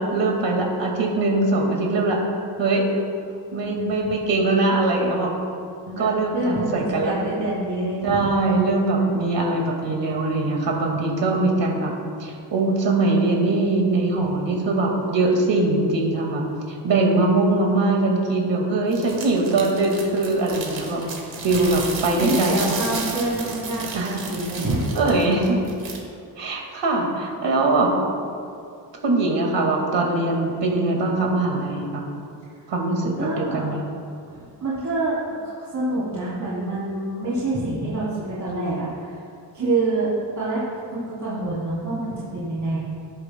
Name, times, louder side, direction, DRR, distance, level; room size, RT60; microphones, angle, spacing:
voice 1, 0.0-2.2 2.6-2.8 3.5-5.3 6.0-7.1 8.0-11.9 12.2-21.0 21.4-22.7 23.9-24.2 24.9-25.6 26.4-27.9 29.0-32.0 32.7-33.8, right 2 dB, 70° right, 0 dB, 2.1 m, -22 dB
voice 2, 3.6-4.1 5.9-8.3 22.1-25.1 33.2-33.7 34.3-35.1 35.6-39.2 39.5-40.1 40.4-40.6 40.9-42.8, right 2 dB, 40° right, -10 dB, 3.1 m, -27 dB
sound 1, 18.9-26.0, right 4 dB, 85° right, 2.1 m, -33 dB
19.0 x 10.5 x 2.3 m, 2.4 s
wide cardioid pair, 135°, 45 cm